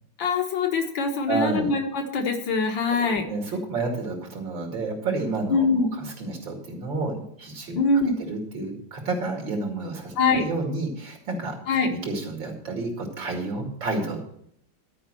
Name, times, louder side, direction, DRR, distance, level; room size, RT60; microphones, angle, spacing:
voice 1, 0.2-3.3 5.5-5.9 7.8-8.2 10.2-10.5 11.7-11.9, left 3 dB, 85° left, 3 dB, 2.2 m, -23 dB
voice 2, 1.3-1.7 3.3-5.7 6.0-7.8 8.3-11.6 11.9-14.3, right 3 dB, 80° right, 1 dB, 3.0 m, -30 dB
12.0 x 5.4 x 7.5 m, 0.69 s
omnidirectional pair, 2.0 m